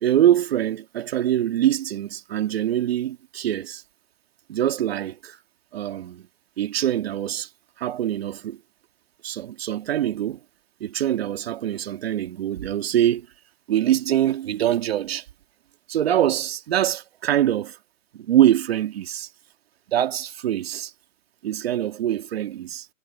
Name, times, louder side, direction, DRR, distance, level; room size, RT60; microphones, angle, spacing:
voice 1, 0.0-3.8 4.5-5.4 5.7-6.2 6.6-7.5 7.8-8.6 9.2-10.4 10.8-13.3 13.7-15.3 15.9-17.8 18.1-19.3 19.9-20.9 21.4-22.9, right 11 dB, 45° right, 2.0 m, -24 dB
hypercardioid pair, 145°, 41 cm